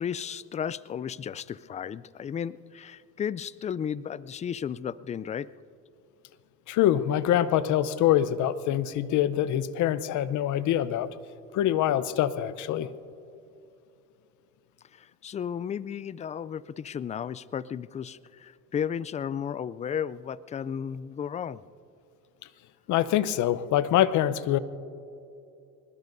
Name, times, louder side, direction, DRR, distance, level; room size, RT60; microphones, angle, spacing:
voice 1, 0.0-5.5 14.9-21.6, left 8 dB, 20° left, 19 dB, 0.3 m, -34 dB
voice 2, 6.7-11.1 11.5-12.9 22.9-24.6, left 11 dB, 60° left, 15 dB, 0.8 m, -24 dB
24.0 x 20.5 x 2.7 m, 2.7 s
supercardioid pair, 80°, 34 cm